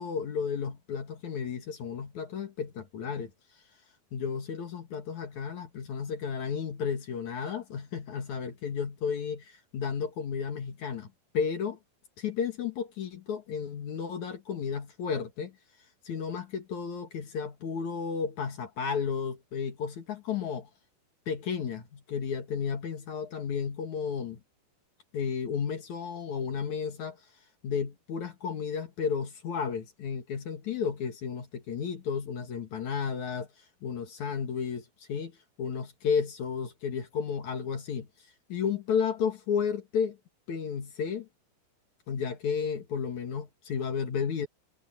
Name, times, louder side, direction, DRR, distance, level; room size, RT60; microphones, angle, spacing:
voice 1, 0.0-3.3 4.1-11.1 11.3-11.8 12.2-15.6 16.0-20.7 21.3-24.4 25.1-27.2 27.6-33.5 33.8-35.3 35.6-38.1 38.5-40.2 40.5-41.3 42.1-44.5, left 6 dB, 55° left, 2.5 m, -33 dB
omnidirectional pair, 5.1 m